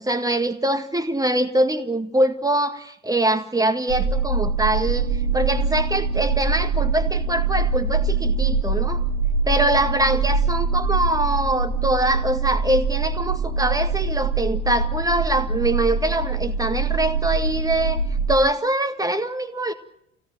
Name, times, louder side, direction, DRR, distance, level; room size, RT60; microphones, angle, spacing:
voice 1, 0.0-9.0 9.5-18.0 18.3-19.7, right 1 dB, 10° right, 8 dB, 1.8 m, -23 dB
sound 1, 3.9-18.4, right 4 dB, 65° right, 4.1 m, -23 dB
25.0 x 17.0 x 7.7 m, 0.78 s
figure-of-eight pair, 60°, 36 cm